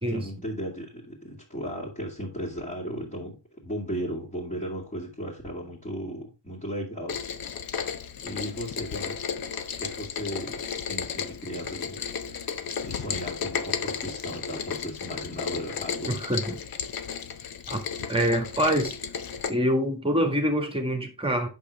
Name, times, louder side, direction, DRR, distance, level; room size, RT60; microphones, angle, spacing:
voice 1, 0.1-3.4 3.6-7.2 8.2-9.2 9.8-12.5 12.8-16.2, equal, 20° left, 2.7 m, -36 dB
Rain, 7.1-19.5, left 7 dB, 55° left, 1.0 m, -34 dB
voice 2, 16.1-16.6 17.7-17.8 18.1-19.0 19.5-21.5, equal, 15° right, 1.8 m, -25 dB
8.4 x 6.8 x 3.5 m
cardioid pair, 115°, 43 cm